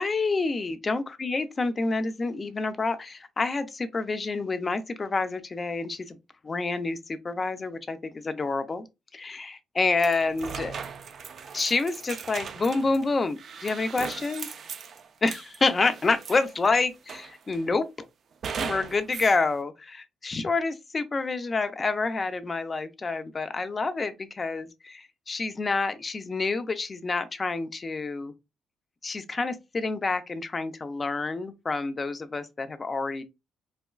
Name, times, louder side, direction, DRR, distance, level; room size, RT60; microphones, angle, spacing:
voice 1, 0.0-6.2 6.4-8.8 9.1-10.8 11.5-14.5 15.2-17.9 18.6-28.3 29.0-33.2, left 3 dB, 30° left, 0.5 m, -28 dB
sound 1, 10.0-16.7 17.1-17.7 18.4-19.4, right 6 dB, 55° right, 0.4 m, -38 dB
4.1 x 2.2 x 2.2 m
cardioid pair, 90°, 0 cm